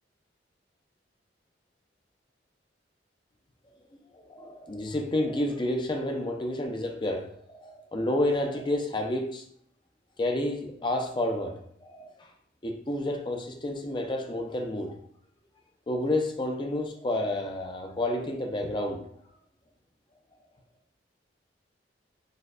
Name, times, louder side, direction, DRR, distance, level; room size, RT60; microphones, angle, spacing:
voice 1, 4.1-9.4 10.2-12.3 12.6-15.0 15.9-19.1, left 1 dB, 25° left, 0.5 m, -30 dB
6.4 x 2.2 x 2.4 m
head